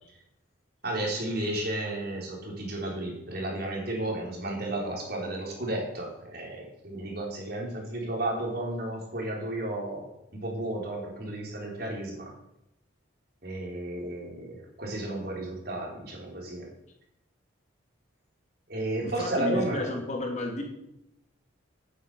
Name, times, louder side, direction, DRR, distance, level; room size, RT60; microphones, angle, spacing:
voice 1, 0.8-12.3 13.4-16.7 18.7-20.0, right 1 dB, 50° right, -1 dB, 4.0 m, -33 dB
voice 2, 19.0-20.6, left 1 dB, 35° left, 1 dB, 2.5 m, -32 dB
9.3 x 9.2 x 8.2 m, 0.84 s
head